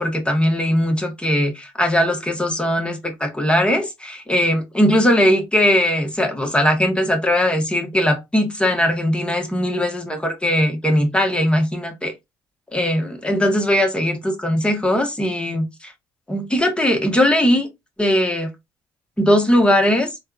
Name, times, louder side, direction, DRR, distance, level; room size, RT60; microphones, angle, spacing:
voice 1, 0.0-12.1 12.7-15.9 16.3-17.7 18.0-18.5 19.2-20.1, equal, 10° left, 1.0 m, -19 dB
3.4 x 2.2 x 2.4 m
hypercardioid pair, 55°, 11 cm